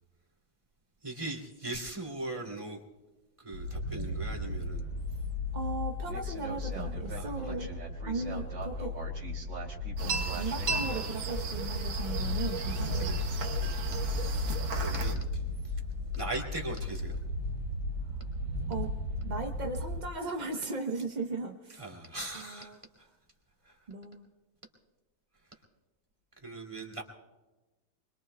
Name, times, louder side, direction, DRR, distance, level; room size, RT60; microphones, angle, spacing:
voice 1, 1.0-2.8 3.4-4.9 7.1-7.6 12.6-13.2 13.5-15.7 16.1-17.2 21.7-22.7 23.0-23.1 23.6-23.8 26.4-27.0, right 2 dB, 15° right, 0 dB, 2.2 m, -40 dB
sound 1, 3.5-20.0, left 2 dB, 70° right, 3.1 m, -35 dB
voice 2, 5.5-7.7 8.1-8.9 10.0-13.4 18.7-18.9 19.2-21.8 22.3-22.8 23.9-24.3, right 3 dB, 50° right, 3 dB, 0.5 m, -37 dB
sound 2, 10.0-15.1, right 4 dB, 90° right, 1.9 m, -36 dB
24.5 x 23.0 x 2.2 m, 1.1 s
omnidirectional pair, 2.1 m